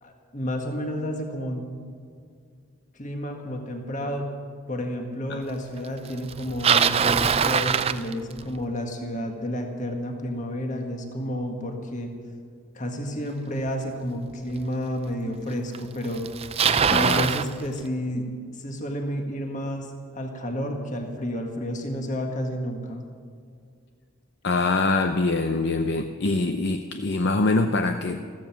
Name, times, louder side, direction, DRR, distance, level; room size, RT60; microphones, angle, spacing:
voice 1, 0.0-1.6 2.9-4.3 4.7-12.1 12.8-16.2 16.9-18.3 18.5-23.0, equal, 35° left, 3 dB, 1.7 m, -31 dB
Bicycle, 6.3-8.6 13.7-13.8 14.6-14.7 15.7-15.8 16.0-17.5, right 7 dB, 30° right, 0.4 m, -22 dB
voice 2, 16.9-17.3 24.4-28.2, left 3 dB, 55° left, 7 dB, 0.6 m, -24 dB
15.0 x 14.5 x 6.0 m, 2.2 s
head